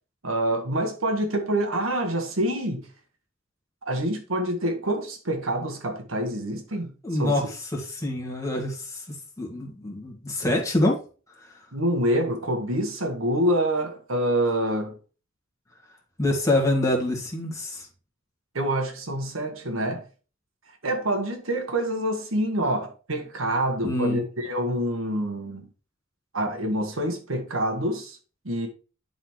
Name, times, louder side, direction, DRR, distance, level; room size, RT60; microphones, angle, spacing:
voice 1, 0.2-2.9 3.8-6.9 7.2-7.3 11.7-15.0 18.5-20.0 20.8-25.7 26.3-28.2 28.4-28.7, right 1 dB, 90° right, 1.6 m, -26 dB
voice 2, 7.0-9.0 9.4-11.0 11.4-11.5 16.2-17.9 23.8-24.2, left 1 dB, 15° left, 2.1 m, -26 dB
10.5 x 4.1 x 3.2 m
head